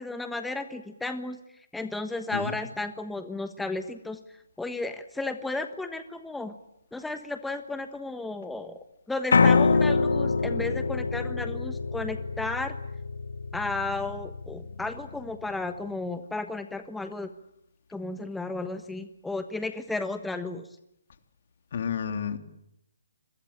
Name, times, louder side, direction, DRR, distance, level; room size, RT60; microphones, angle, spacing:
voice 1, 0.0-1.4 1.7-4.2 4.6-6.5 6.9-8.8 9.1-12.7 13.5-17.3 17.9-20.7, left 2 dB, 5° left, 8 dB, 1.3 m, -33 dB
Piano, 9.3-15.5, left 4 dB, 70° left, 1.9 m, -26 dB
voice 2, 21.7-22.4, left 7 dB, 55° left, 7 dB, 3.2 m, -30 dB
28.0 x 22.0 x 8.8 m, 0.80 s
hypercardioid pair, 145°, 0 cm